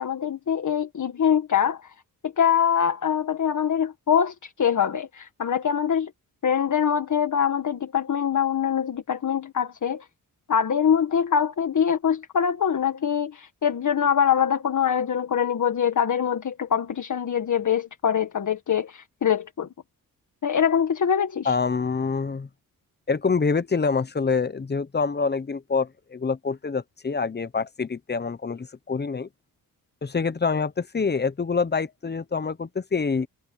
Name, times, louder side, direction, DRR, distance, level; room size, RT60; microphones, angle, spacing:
voice 1, 0.0-1.8 2.2-6.1 6.4-10.0 10.5-19.7 20.4-21.5, left 8 dB, 55° left, 1.8 m, -23 dB
voice 2, 21.4-22.5 23.1-29.3 30.0-33.3, left 5 dB, 30° left, 0.9 m, -26 dB
cardioid pair, 95°, 35 cm